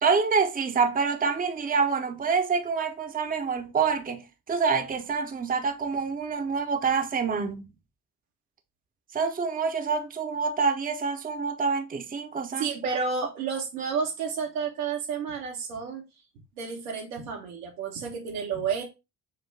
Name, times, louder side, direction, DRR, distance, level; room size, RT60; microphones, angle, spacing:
voice 1, 0.0-7.6 9.1-12.7, right 5 dB, 20° right, 0.7 m, -26 dB
voice 2, 12.6-16.0 16.6-18.8, right 5 dB, 85° right, 1.4 m, -31 dB
6.3 x 2.1 x 3.5 m
hypercardioid pair, 55°, 46 cm